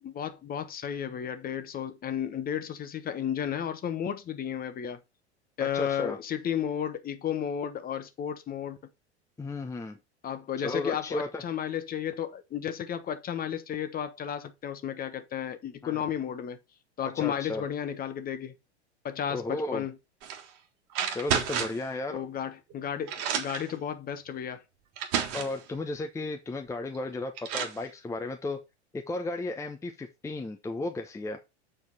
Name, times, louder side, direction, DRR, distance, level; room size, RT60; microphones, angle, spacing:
voice 1, 0.0-5.0 5.6-8.8 10.2-16.6 17.0-18.5 19.0-20.0 22.1-24.6, left 9 dB, 25° left, 1.1 m, -33 dB
voice 2, 5.6-6.2 9.4-10.0 10.6-11.4 15.8-16.0 17.1-17.6 19.3-19.9 21.1-22.2 25.3-28.6 28.9-31.4, left 2 dB, 10° left, 0.7 m, -34 dB
sound 1, 20.2-20.5 20.9-21.9 22.7-22.8 23.1-23.7 24.5-24.6 25.0-25.6 26.9-27.0 27.4-27.8, right 8 dB, 45° right, 1.6 m, -31 dB
7.7 x 4.5 x 4.1 m
hypercardioid pair, 90°, 34 cm